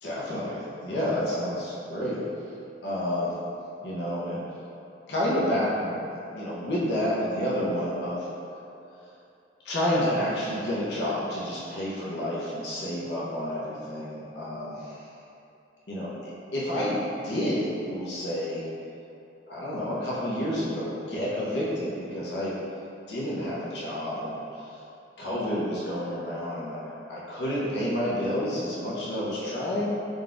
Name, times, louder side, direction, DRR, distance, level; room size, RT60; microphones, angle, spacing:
voice 1, 0.0-2.2 2.8-3.3 3.8-4.4 5.1-6.0 6.3-8.3 9.6-15.1 15.9-17.0 17.2-18.6 19.5-22.6 23.1-24.8 25.2-29.9, left 1 dB, 65° left, -7 dB, 0.7 m, -29 dB
3.9 x 2.3 x 3.7 m, 2.7 s
head